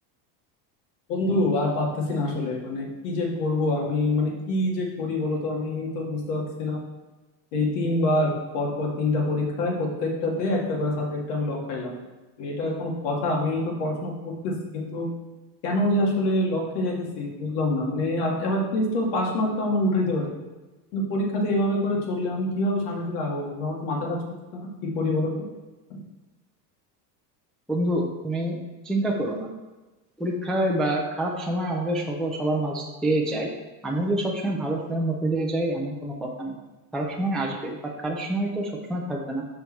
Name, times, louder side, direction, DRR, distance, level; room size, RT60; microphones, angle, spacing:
voice 1, 1.1-6.8 7.5-12.0 12.4-15.1 15.6-20.2 20.9-24.2 24.5-24.7 24.9-25.5 25.9-26.0, left 1 dB, 75° left, -2 dB, 2.1 m, -26 dB
voice 2, 27.7-28.6 28.8-29.5 30.2-33.5 33.8-36.5 36.9-39.4, right 1 dB, ahead, -2 dB, 0.4 m, -27 dB
6.1 x 5.5 x 4.5 m, 1.2 s
cardioid pair, 155°, 47 cm